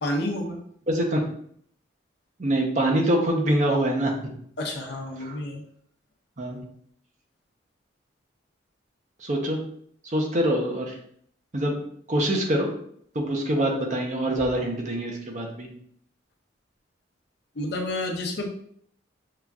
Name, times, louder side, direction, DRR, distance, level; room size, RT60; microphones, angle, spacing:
voice 1, 0.0-0.6 4.6-5.6 17.6-18.5, left 1 dB, 60° left, 1 dB, 0.7 m, -29 dB
voice 2, 0.9-1.2 2.4-4.1 5.2-5.4 6.4-6.6 9.2-9.6 10.0-11.0 11.5-11.8 12.1-12.7 13.1-15.7, right 1 dB, 40° right, 1 dB, 0.7 m, -24 dB
5.6 x 2.4 x 2.3 m, 0.65 s
head